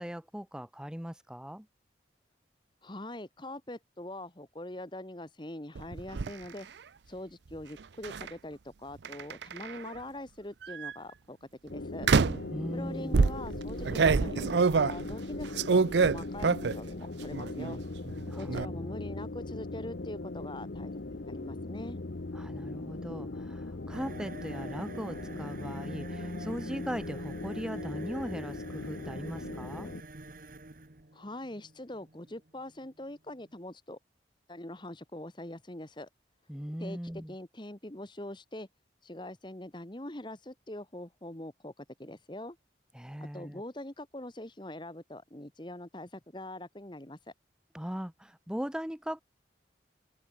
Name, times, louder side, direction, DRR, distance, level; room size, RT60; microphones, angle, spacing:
voice 1, 0.0-1.7 12.5-13.2 18.3-18.9 22.3-29.9 36.5-37.3 42.9-43.6 47.7-49.2, equal, 5° right, 0.6 m, -39 dB
voice 2, 2.8-6.7 7.1-11.4 11.6-12.1 12.7-17.8 18.4-22.0 31.1-34.0 34.5-36.1 36.8-37.0 37.3-38.7 39.0-42.6 43.3-47.2, left 1 dB, 25° left, 1.6 m, -43 dB
sound 1, 5.7-6.3 8.0-8.3 9.0-9.9 10.6-10.9 12.0-12.5 13.1-16.9 17.2-17.8 18.1-18.7, right 4 dB, 75° right, 0.5 m, -26 dB
sound 2, 11.7-30.0, left 2 dB, 65° left, 0.9 m, -39 dB
sound 3, 23.9-33.5, right 2 dB, 50° right, 1.6 m, -49 dB
open air
head